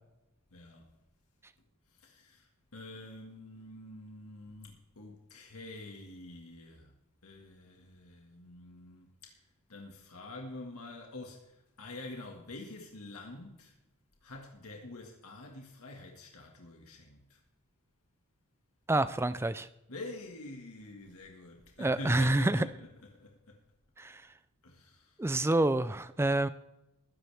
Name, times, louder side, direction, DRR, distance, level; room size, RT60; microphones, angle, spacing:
voice 1, 0.5-0.9 1.9-6.9 7.2-9.4 9.7-13.7 14.2-17.4 19.9-23.6 24.6-25.2, left 2 dB, 75° left, 1.9 m, -47 dB
voice 2, 18.9-19.7 21.8-22.7 24.0-24.2 25.2-26.5, right 2 dB, 10° right, 0.4 m, -27 dB
21.5 x 10.5 x 3.5 m
head